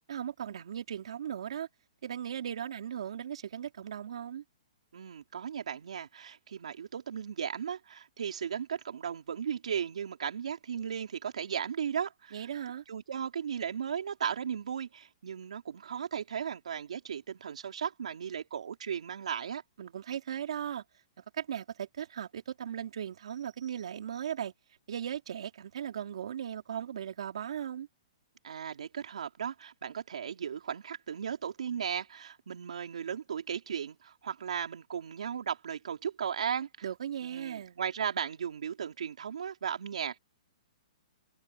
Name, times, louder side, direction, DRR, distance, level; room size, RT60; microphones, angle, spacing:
voice 1, 0.1-1.7 2.0-4.4 12.3-12.8 19.8-20.8 21.3-24.5 24.9-27.9 36.8-37.8, right 9 dB, 60° right, 3.5 m, -37 dB
voice 2, 4.9-12.5 12.9-19.6 28.4-36.7 37.2-40.2, right 8 dB, 80° right, 3.7 m, -36 dB
hypercardioid pair, 175°, 4 cm